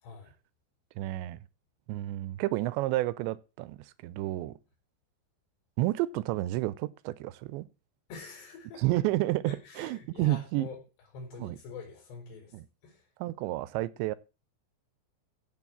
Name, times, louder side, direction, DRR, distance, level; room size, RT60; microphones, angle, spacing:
voice 1, 0.0-0.3 8.1-8.8 9.5-10.8 11.1-12.5 12.8-13.1, left 4 dB, 70° left, 6.7 m, -45 dB
voice 2, 1.0-1.4 1.9-4.5 5.8-7.7 8.8-10.7 11.4-11.6 12.5-12.7 13.2-14.2, right 17 dB, 85° right, 3.0 m, -30 dB
15.5 x 6.1 x 7.3 m
omnidirectional pair, 5.0 m